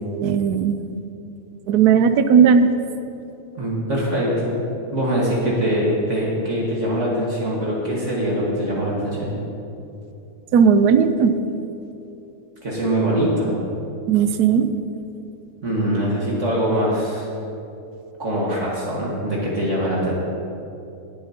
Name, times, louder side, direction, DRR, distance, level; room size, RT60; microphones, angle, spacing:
voice 1, 0.1-0.8 1.7-2.7 10.5-11.4 14.1-14.7, right 7 dB, 85° right, 10 dB, 1.2 m, -16 dB
voice 2, 3.6-4.5 4.9-9.3 12.6-13.6 15.6-17.3 18.2-20.1, equal, 50° right, -5 dB, 1.9 m, -23 dB
20.0 x 7.9 x 2.8 m, 2.7 s
omnidirectional pair, 1.6 m